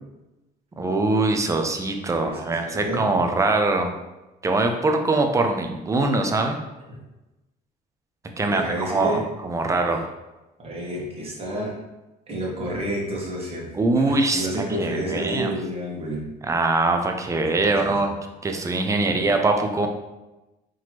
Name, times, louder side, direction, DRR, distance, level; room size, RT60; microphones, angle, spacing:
voice 1, 0.8-3.9 4.4-6.6 8.4-10.1 13.7-14.5 14.8-15.5 16.4-18.1 18.4-19.9, right 2 dB, 20° right, 4 dB, 0.5 m, -22 dB
voice 2, 2.1-3.1 8.5-9.2 10.6-11.7 12.3-13.7 13.9-16.2 17.6-18.0 19.0-19.3, right 1 dB, 35° right, -3 dB, 1.3 m, -30 dB
4.1 x 3.0 x 2.9 m, 1.0 s
cardioid pair, 110°, 17 cm